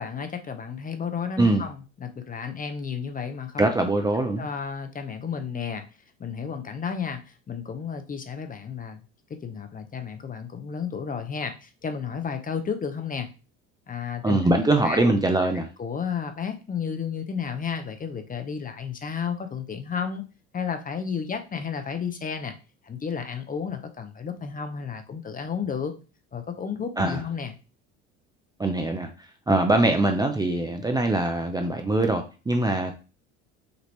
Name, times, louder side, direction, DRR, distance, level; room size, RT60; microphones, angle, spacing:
voice 1, 0.0-3.7 4.4-5.8 6.2-9.0 9.3-13.3 13.9-14.4 14.8-15.1 15.8-20.2 20.5-22.5 22.8-25.9 26.3-27.5, left 6 dB, 25° left, 8 dB, 0.7 m, -32 dB
voice 2, 3.6-4.5 14.2-15.7 27.0-27.2 28.6-32.9, right 2 dB, 10° right, 4 dB, 0.5 m, -23 dB
5.2 x 2.8 x 3.1 m, 0.32 s
hypercardioid pair, 80°, 35 cm